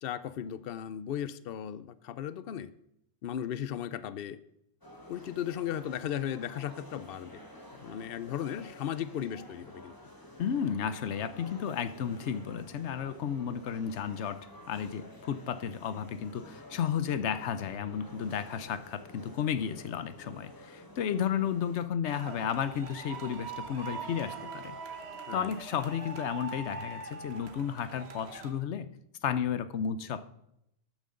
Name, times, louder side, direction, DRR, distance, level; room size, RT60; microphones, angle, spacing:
voice 1, 0.0-2.7 3.2-4.4 5.1-7.4 7.8-10.0 25.3-25.5, left 10 dB, 60° left, 15 dB, 0.8 m, -36 dB
sound 1, 4.8-21.9, left 1 dB, 20° left, 1.5 m, -50 dB
voice 2, 10.4-24.8 25.3-28.9 29.2-30.3, left 8 dB, 85° left, 14 dB, 1.0 m, -33 dB
sound 2, 22.0-28.5, right 4 dB, 70° right, 1.4 m, -42 dB
12.5 x 9.1 x 3.8 m, 0.78 s
omnidirectional pair, 1.2 m